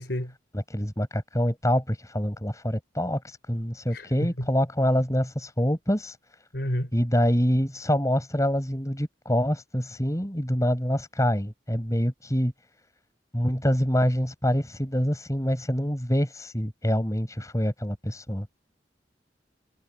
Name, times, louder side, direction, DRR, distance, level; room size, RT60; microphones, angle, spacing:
voice 1, 0.0-0.3 3.9-4.5 6.5-6.9, equal, 65° left, 4.1 m, -30 dB
voice 2, 0.5-6.2 6.9-12.5 13.3-18.5, equal, 20° left, 6.8 m, -26 dB
head